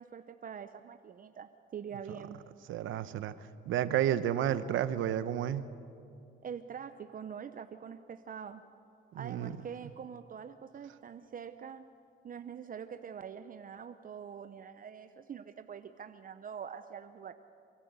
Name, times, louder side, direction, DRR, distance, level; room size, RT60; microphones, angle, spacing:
voice 1, 0.0-2.4 6.4-8.6 9.1-11.8 12.2-17.3, right 7 dB, 45° right, 9 dB, 0.7 m, -44 dB
voice 2, 2.7-3.3 3.7-5.6 9.1-9.6, right 11 dB, 80° right, 13 dB, 0.9 m, -31 dB
27.0 x 12.5 x 8.2 m, 2.5 s
cardioid pair, 90°, 20 cm